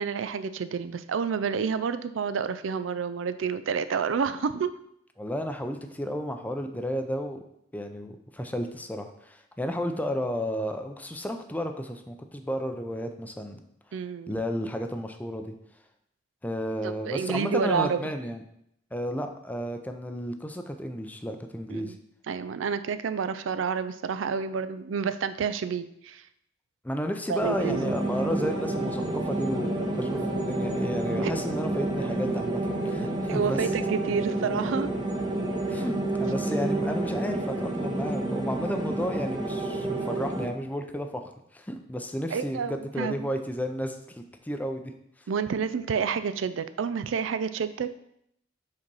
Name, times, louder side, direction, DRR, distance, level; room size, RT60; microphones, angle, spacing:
voice 1, 0.0-4.7 13.9-14.3 16.8-18.0 21.7-22.0 22.3-26.2 27.3-27.9 31.2-31.3 33.3-34.9 42.3-43.3 45.3-47.9, right 6 dB, 85° right, 12 dB, 0.4 m, -29 dB
voice 2, 5.2-7.4 7.7-13.6 14.3-15.5 16.4-18.4 18.9-22.0 26.8-33.6 35.7-41.2 41.5-44.9, equal, 10° left, 6 dB, 0.5 m, -32 dB
sound 1, 27.4-40.5, right 2 dB, 25° right, 0.9 m, -29 dB
5.3 x 4.1 x 5.4 m, 0.75 s
head